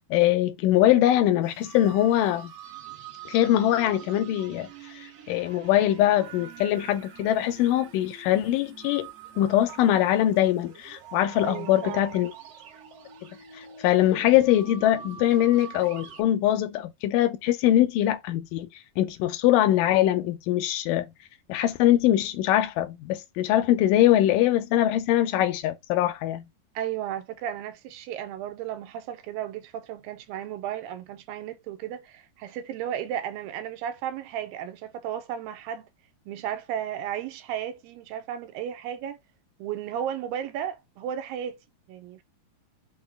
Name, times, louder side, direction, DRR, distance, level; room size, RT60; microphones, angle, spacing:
voice 1, 0.1-2.5 3.3-4.7 5.0-9.1 9.4-12.3 13.6-18.7 19.0-21.1 21.5-26.4, left 13 dB, 80° left, 2.1 m, -22 dB
sound 1, 1.4-16.2, right 7 dB, 65° right, 1.7 m, -45 dB
voice 2, 11.4-12.2 26.8-35.9 36.3-39.2 39.6-41.6 41.9-42.2, right 10 dB, 85° right, 2.4 m, -34 dB
6.2 x 2.2 x 3.4 m
omnidirectional pair, 4.0 m